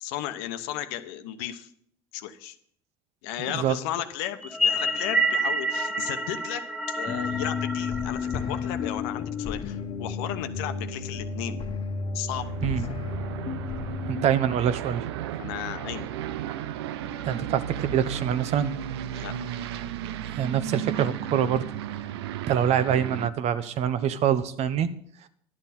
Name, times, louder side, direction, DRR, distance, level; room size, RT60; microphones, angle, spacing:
voice 1, 0.0-1.7 2.1-2.6 3.2-11.6 12.1-12.5 15.4-16.1 19.1-19.3, left 12 dB, 75° left, 10 dB, 0.9 m, -34 dB
sound 1, 4.4-9.0, equal, ahead, 0.9 m, -28 dB
sound 2, 7.1-14.2, left 5 dB, 40° left, 1.1 m, -32 dB
Aircraft, 12.3-23.3, right 11 dB, 85° right, 0.5 m, -34 dB
voice 2, 14.1-15.1 17.3-18.7 20.3-21.6 22.5-24.9, right 9 dB, 55° right, 14 dB, 0.9 m, -25 dB
11.0 x 10.0 x 4.3 m, 0.65 s
hypercardioid pair, 80°, 13 cm